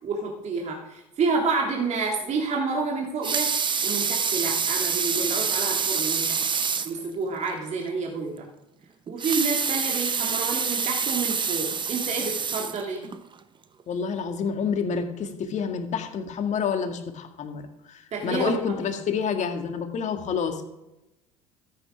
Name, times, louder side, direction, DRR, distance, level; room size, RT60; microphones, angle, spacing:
voice 1, 0.0-3.5 3.8-6.5 6.8-8.5 9.1-13.1 18.1-18.6, right 4 dB, 45° right, 0 dB, 2.5 m, -29 dB
Water tap faucet / Sink (filling or washing) / Liquid, 3.0-7.0 7.5-7.6 7.9-8.0 9.1-13.2 13.8-13.9, right 6 dB, 30° right, 1.0 m, -26 dB
voice 2, 13.9-17.6 17.9-20.6, left 6 dB, 45° left, 6 dB, 2.0 m, -28 dB
13.5 x 8.4 x 5.1 m, 0.96 s
hypercardioid pair, 70°, 16 cm